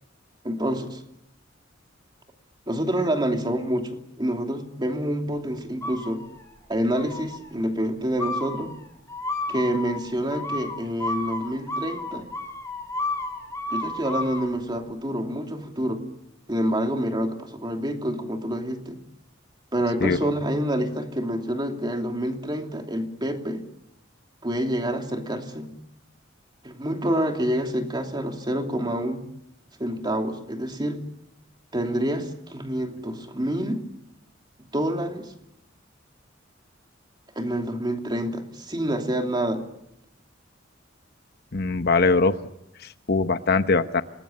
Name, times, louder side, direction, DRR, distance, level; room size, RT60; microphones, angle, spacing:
voice 1, 0.4-1.0 2.7-6.2 6.7-8.7 9.5-12.3 13.7-16.1 16.5-19.0 19.7-23.7 24.4-25.8 26.6-29.3 29.8-31.0 31.7-33.9 34.7-35.3 37.3-39.7, equal, 25° right, 4 dB, 2.9 m, -27 dB
sound 1, 5.8-6.6 6.9-7.5 8.2-14.5, left 2 dB, 15° left, 4.1 m, -32 dB
voice 2, 41.5-42.4 43.1-44.0, left 3 dB, 55° left, 10 dB, 1.0 m, -21 dB
27.5 x 20.0 x 9.0 m, 0.81 s
head